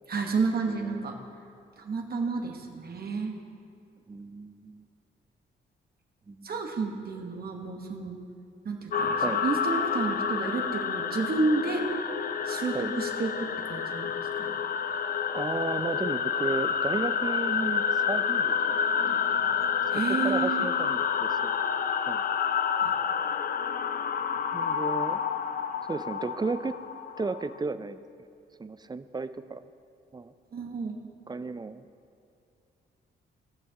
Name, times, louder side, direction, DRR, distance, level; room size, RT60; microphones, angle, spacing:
voice 1, 0.1-1.1 1.8-3.3 6.4-8.2 8.6-11.8 12.4-14.5 19.9-20.7 22.8-22.9 30.5-31.0, right 4 dB, 50° right, 2 dB, 1.3 m, -31 dB
voice 2, 0.7-1.1 4.1-4.9 6.3-6.5 9.2-9.4 12.7-12.9 15.3-19.2 20.2-21.6 22.1-22.2 24.5-25.2 25.9-26.8 27.2-28.0 28.6-29.7 30.1-30.3 31.3-31.8, right 4 dB, 20° right, 12 dB, 0.4 m, -34 dB
sound 1, 8.9-27.6, left 7 dB, 50° left, 0.5 m, -29 dB
18.0 x 6.3 x 2.9 m, 2.5 s
cardioid pair, 70°, 20 cm